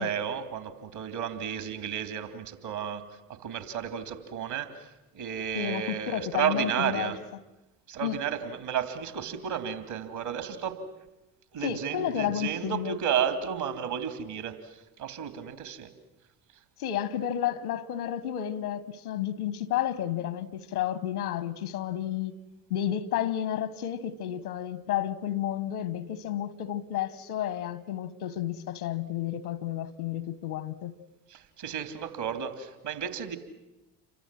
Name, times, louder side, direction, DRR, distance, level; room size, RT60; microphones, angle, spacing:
voice 1, 0.0-3.0 3.3-7.2 7.9-10.8 11.5-15.9 31.3-33.4, right 8 dB, 65° right, 2.9 m, -32 dB
voice 2, 5.5-7.1 8.0-8.2 11.6-13.0 16.8-22.3 22.7-30.9, left 11 dB, 80° left, 1.3 m, -31 dB
28.5 x 24.0 x 7.6 m
figure-of-eight pair, 50°, 43 cm